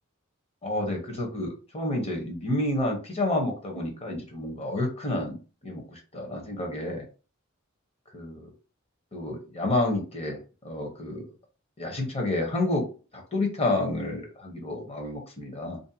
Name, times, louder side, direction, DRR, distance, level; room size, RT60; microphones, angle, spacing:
voice 1, 0.6-7.1 8.1-8.5 9.1-10.4 10.6-11.3 11.8-12.9 13.3-15.8, left 2 dB, 30° left, 2 dB, 0.8 m, -29 dB
2.6 x 2.1 x 2.7 m, 0.34 s
head